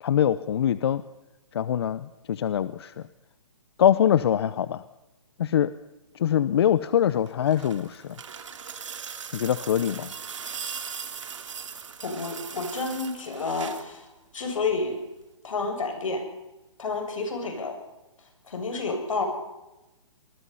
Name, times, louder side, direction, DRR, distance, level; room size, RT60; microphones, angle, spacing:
voice 1, 0.0-1.0 1.5-3.0 3.8-4.8 5.4-5.7 6.1-8.2 9.3-10.1, left 9 dB, 50° left, 15 dB, 0.8 m, -23 dB
sound 1, 7.1-13.9 15.2-15.3, right 6 dB, 70° right, 2.8 m, -39 dB
voice 2, 12.0-14.1 14.3-15.0 15.4-16.2 16.8-17.8 18.5-19.3, left 3 dB, 80° left, 5 dB, 7.4 m, -30 dB
26.0 x 20.5 x 5.7 m, 1.0 s
hypercardioid pair, 160°, 17 cm